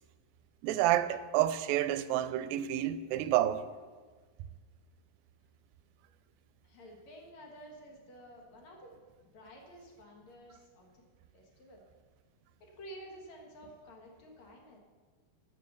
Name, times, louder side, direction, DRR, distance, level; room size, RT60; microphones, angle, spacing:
voice 1, 0.6-3.7, right 13 dB, 90° right, 2.4 m, -29 dB
voice 2, 6.6-8.9 9.3-11.0 11.3-11.8 12.6-14.8, equal, 55° left, 2.6 m, -51 dB
12.0 x 7.0 x 6.6 m
omnidirectional pair, 4.1 m